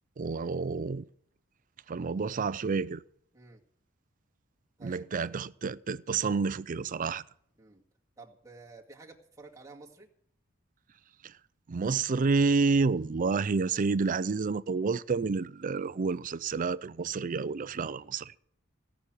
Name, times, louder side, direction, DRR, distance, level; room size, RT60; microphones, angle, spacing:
voice 1, 0.2-1.0 1.9-3.0 4.8-7.2 11.2-11.3 11.7-18.4, right 4 dB, 40° right, 0.4 m, -29 dB
voice 2, 4.8-5.4 7.6-7.8 8.2-10.1, right 3 dB, 15° right, 2.0 m, -51 dB
17.0 x 6.2 x 9.0 m
head